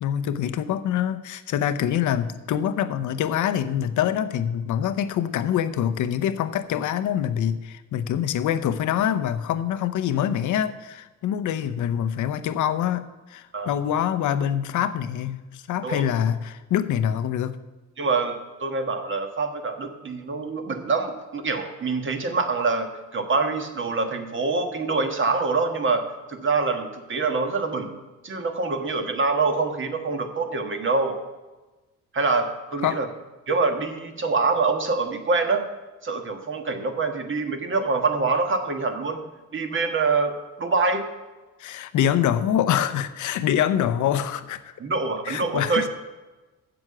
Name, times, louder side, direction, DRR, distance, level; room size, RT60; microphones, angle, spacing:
voice 1, 0.0-17.6 32.8-33.0 41.6-44.7 45.2-45.9, left 10 dB, 75° left, 11 dB, 0.8 m, -25 dB
voice 2, 15.8-16.2 18.0-31.2 32.1-33.1 33.5-35.6 36.0-39.2 39.5-40.3 40.6-41.1 44.8-45.9, right 4 dB, 40° right, 5 dB, 1.5 m, -25 dB
7.7 x 7.2 x 7.7 m, 1.2 s
cardioid pair, 90°, 30 cm